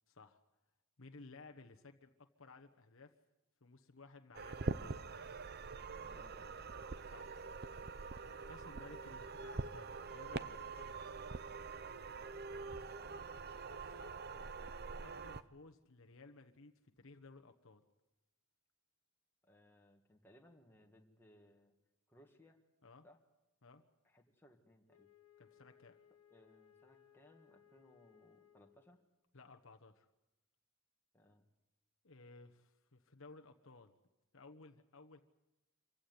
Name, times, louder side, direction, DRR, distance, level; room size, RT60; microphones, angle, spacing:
voice 1, 0.1-0.4 1.0-3.1 3.6-4.9 7.0-7.3 8.5-11.1 13.8-14.2 15.0-17.8 22.8-23.0 23.6-23.8 25.4-26.0 29.3-30.1 32.0-33.9 34.3-35.2, left 3 dB, 60° left, 5 dB, 1.2 m, -58 dB
sound 1, 4.3-15.4, right 4 dB, 45° right, 0.7 m, -45 dB
voice 2, 5.9-6.6 12.5-13.4 19.4-21.8 22.1-22.6 23.0-23.2 24.0-25.1 26.3-29.0 31.1-31.5, equal, 10° left, 2 dB, 1.9 m, -65 dB
Wind instrument woodwind instrument, 24.9-29.1, left 9 dB, 85° left, 1.3 m, -67 dB
26.5 x 15.5 x 9.6 m, 1.0 s
head